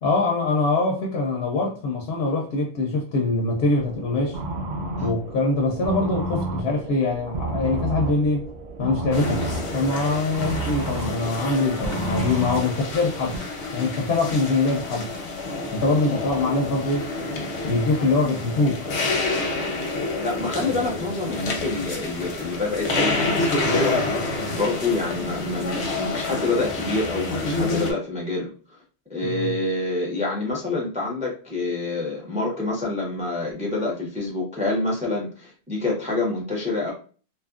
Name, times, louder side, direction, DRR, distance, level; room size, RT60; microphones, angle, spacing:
voice 1, 0.0-4.4 5.0-8.5 8.8-9.4 9.7-13.4 13.7-15.1 15.7-17.1 17.6-18.9 29.2-29.5, left 3 dB, 75° left, 0.8 m, -23 dB
sound 1, 3.8-13.4, right 2 dB, 55° right, 0.6 m, -31 dB
sound 2, 9.1-27.9, left 2 dB, 90° left, 1.0 m, -28 dB
voice 2, 20.2-28.8 29.1-36.9, left 2 dB, 10° right, 0.4 m, -27 dB
2.7 x 2.4 x 2.4 m
omnidirectional pair, 1.1 m